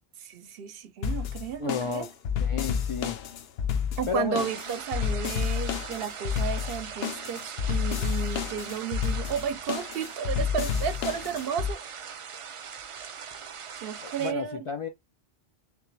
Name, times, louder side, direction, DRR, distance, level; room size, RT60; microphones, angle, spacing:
voice 1, 0.2-2.1 4.0-12.0 13.8-14.7, right 8 dB, 70° right, 0.8 m, -33 dB
sound 1, 1.0-11.7, left 7 dB, 80° left, 0.8 m, -30 dB
voice 2, 1.6-2.1 2.4-3.2 4.1-4.5 14.0-14.9, left 5 dB, 55° left, 0.3 m, -32 dB
sound 2, 4.4-14.3, right 7 dB, 55° right, 0.3 m, -41 dB
3.3 x 3.3 x 3.0 m
omnidirectional pair, 1.0 m